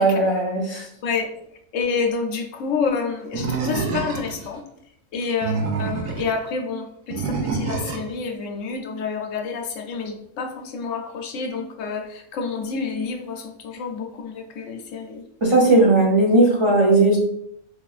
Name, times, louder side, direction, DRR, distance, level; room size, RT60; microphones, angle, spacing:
voice 1, 0.0-0.9 15.4-17.2, right 2 dB, 50° right, -4 dB, 0.3 m, -17 dB
voice 2, 1.7-4.6 5.1-15.2, left 5 dB, 70° left, 3 dB, 0.9 m, -28 dB
Animal, 3.3-4.5 5.2-6.3 7.1-8.1, right 4 dB, 75° right, 1.0 m, -27 dB
4.5 x 2.4 x 2.3 m, 0.74 s
omnidirectional pair, 1.4 m